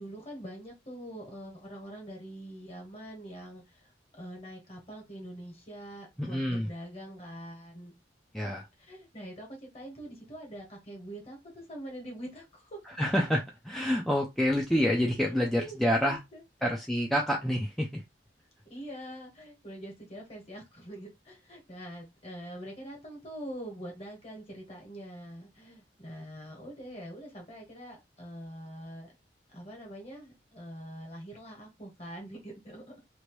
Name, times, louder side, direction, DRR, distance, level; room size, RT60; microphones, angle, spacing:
voice 1, 0.0-7.9 8.8-12.8 15.2-16.4 18.6-29.1 29.5-33.0, right 1 dB, 35° left, 1.4 m, -44 dB
voice 2, 6.2-6.7 8.3-8.7 13.0-16.2 16.6-18.0, equal, ahead, 0.4 m, -27 dB
3.0 x 2.5 x 3.1 m
head